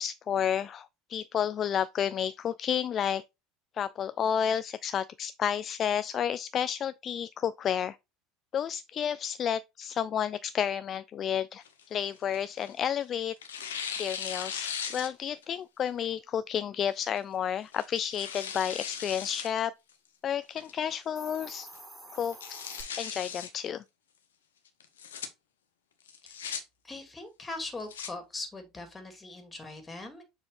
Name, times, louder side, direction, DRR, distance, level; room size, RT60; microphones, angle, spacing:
voice 1, 0.0-3.2 3.7-8.0 8.5-13.3 14.0-19.7 20.2-21.7 22.1-22.4 23.0-23.8, left 9 dB, 40° left, 0.3 m, -31 dB
Tearing, 11.6-12.9 13.4-15.5 15.9-16.0 16.9-17.2 17.7-19.5 19.9-20.0 20.6-21.0 21.3-21.4 21.7-21.8 22.2-23.5 24.8-25.3 26.1-26.6 27.6-28.1, left 7 dB, 80° left, 1.0 m, -38 dB
Hiss, 21.0-22.8, right 2 dB, 10° right, 3.3 m, -47 dB
voice 2, 26.8-30.2, left 2 dB, 20° left, 2.3 m, -41 dB
6.8 x 4.3 x 3.3 m
hypercardioid pair, 70°, 0 cm